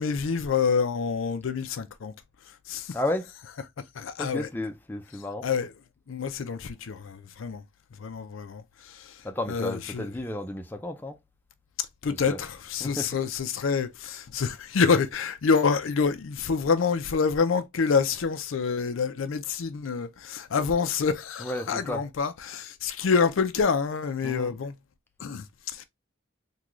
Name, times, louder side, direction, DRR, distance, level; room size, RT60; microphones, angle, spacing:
voice 1, 0.0-2.1 2.5-3.0 3.9-4.5 5.4-5.7 6.1-7.6 7.9-10.1 12.0-24.8 25.2-25.8, left 5 dB, 70° left, 0.5 m, -27 dB
voice 2, 2.9-3.3 4.2-5.5 9.2-11.2 12.1-12.4 12.8-13.1 21.4-22.0 24.2-24.5, left 1 dB, 10° left, 0.4 m, -32 dB
3.7 x 2.3 x 2.9 m
head